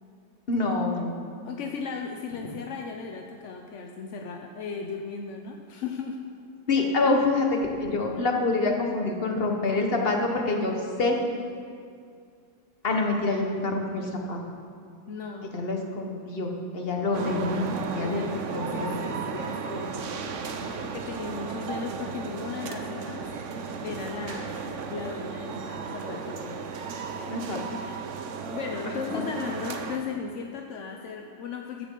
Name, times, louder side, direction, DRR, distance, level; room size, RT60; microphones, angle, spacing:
voice 1, 0.5-1.1 6.7-11.2 12.8-14.4 15.5-18.2 18.5-19.0 27.3-27.6 29.1-29.2, left 3 dB, 35° left, 2 dB, 1.4 m, -26 dB
voice 2, 1.4-6.2 15.1-15.6 18.0-20.0 20.8-23.3 23.8-24.5 24.9-26.6 28.5-31.9, left 5 dB, 60° left, 3 dB, 0.8 m, -36 dB
sound 1, 17.1-30.0, right 5 dB, 55° right, 0.9 m, -35 dB
15.0 x 10.5 x 3.9 m, 2.2 s
omnidirectional pair, 1.9 m